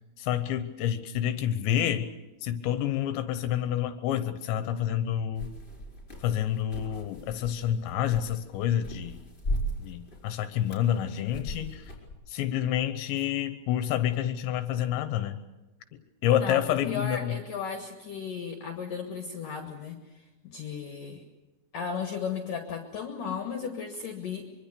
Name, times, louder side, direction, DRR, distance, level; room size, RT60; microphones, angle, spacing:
voice 1, 0.2-2.1 2.4-5.5 6.2-9.2 9.8-11.9 12.3-15.4 16.2-17.4, left 11 dB, 75° left, 10 dB, 3.0 m, -28 dB
sound 1, 5.3-12.1, equal, 15° left, 4.1 m, -38 dB
voice 2, 16.4-21.2 21.7-24.4, left 6 dB, 60° left, 4 dB, 2.6 m, -35 dB
24.0 x 24.0 x 6.8 m, 1.1 s
omnidirectional pair, 5.6 m